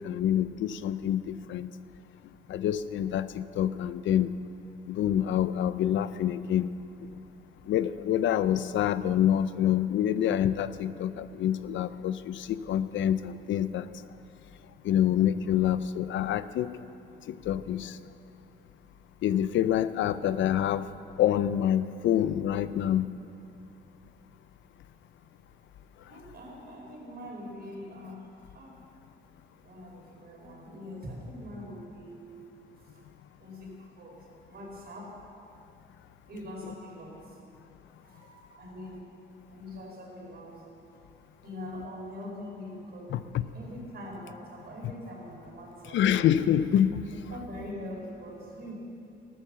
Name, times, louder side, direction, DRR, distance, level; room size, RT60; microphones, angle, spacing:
voice 1, 0.0-1.7 2.5-4.3 4.9-6.7 7.7-13.9 14.8-16.8 17.3-18.0 19.2-20.9 21.2-23.1 43.1-43.5 44.8-44.9 45.9-47.0, left 10 dB, 75° left, 14 dB, 0.5 m, -27 dB
voice 2, 26.1-28.2 28.5-28.8 29.6-32.4 32.9-33.0 33.4-35.2 36.3-37.4 38.0-39.1 39.5-40.6 41.4-43.3 43.5-46.0 47.1-48.7, left 1 dB, 55° right, -2 dB, 4.8 m, -43 dB
13.5 x 13.0 x 6.9 m, 2.6 s
cardioid pair, 90°, 20 cm